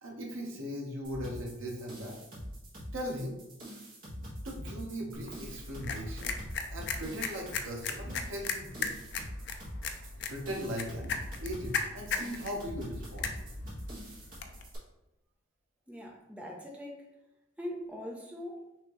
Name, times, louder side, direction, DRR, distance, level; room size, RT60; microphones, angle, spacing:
voice 1, 0.0-2.2 2.9-3.4 4.4-6.3 6.7-8.9 10.3-11.1 11.4-13.3, equal, 75° right, 1.1 m, -39 dB
sound 1, 1.0-14.8, equal, 40° right, 1.5 m, -44 dB
sound 2, 5.1-14.6, left 5 dB, 55° left, 0.5 m, -38 dB
voice 2, 15.9-17.0 17.6-18.7, left 1 dB, 5° right, 0.6 m, -41 dB
5.9 x 2.9 x 3.1 m
head